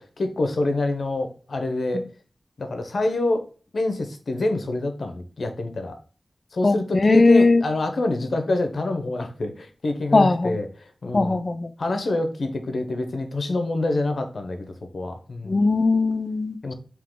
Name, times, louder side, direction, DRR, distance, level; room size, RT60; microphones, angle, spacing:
voice 1, 0.0-2.1 2.6-3.5 3.7-6.0 6.5-10.7 11.0-11.4 11.8-15.6 16.6-16.7, left 2 dB, 75° left, 6 dB, 0.6 m, -26 dB
voice 2, 6.6-7.6 10.1-10.6 11.1-11.7 15.4-16.7, left 3 dB, 45° left, 10 dB, 0.3 m, -19 dB
3.6 x 2.8 x 3.6 m, 0.39 s
wide cardioid pair, 100°, 0 cm